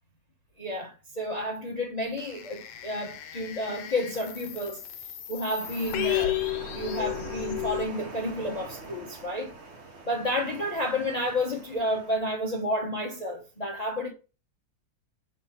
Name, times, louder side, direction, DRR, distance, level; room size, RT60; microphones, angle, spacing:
voice 1, 0.6-4.8 5.3-6.4 6.7-9.5 10.1-14.1, left 1 dB, 35° left, 0.6 m, -31 dB
sound 1, 2.2-7.9, left 13 dB, 85° left, 1.5 m, -33 dB
sound 2, 5.6-12.2, right 3 dB, 40° right, 1.2 m, -44 dB
6.0 x 3.2 x 5.7 m
omnidirectional pair, 2.1 m